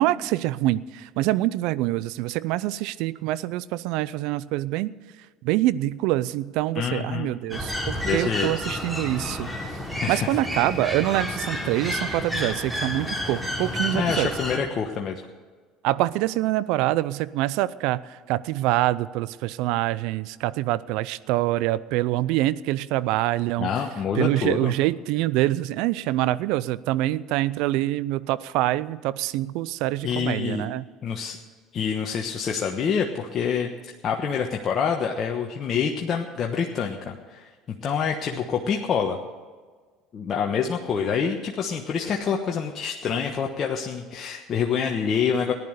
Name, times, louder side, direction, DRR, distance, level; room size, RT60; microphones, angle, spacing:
voice 1, 0.0-4.9 5.4-9.7 10.1-14.3 15.8-23.7 24.1-30.8, right 16 dB, 70° right, 18 dB, 0.5 m, -25 dB
voice 2, 6.7-7.3 8.0-8.5 10.0-10.3 13.9-15.2 23.6-24.7 30.0-30.7 31.0-31.4 31.7-33.7 34.0-39.2 40.1-45.5, left 6 dB, 45° left, 1 dB, 1.2 m, -26 dB
sound 1, 7.5-14.6, left 1 dB, 5° right, 3.0 m, -30 dB
15.0 x 11.0 x 6.6 m, 1.5 s
hypercardioid pair, 75°, 0 cm